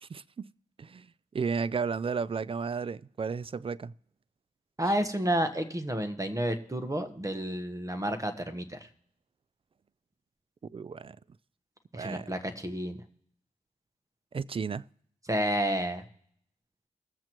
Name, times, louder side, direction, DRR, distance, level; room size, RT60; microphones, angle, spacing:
voice 1, 0.0-0.5 0.8-1.1 1.3-3.9 10.7-11.2 11.9-12.3 14.3-14.8, right 5 dB, 40° right, 0.3 m, -33 dB
voice 2, 4.8-8.9 11.9-13.0 15.3-16.0, right 1 dB, 20° right, 1.1 m, -30 dB
21.5 x 7.5 x 3.0 m
cardioid pair, 55°, 15 cm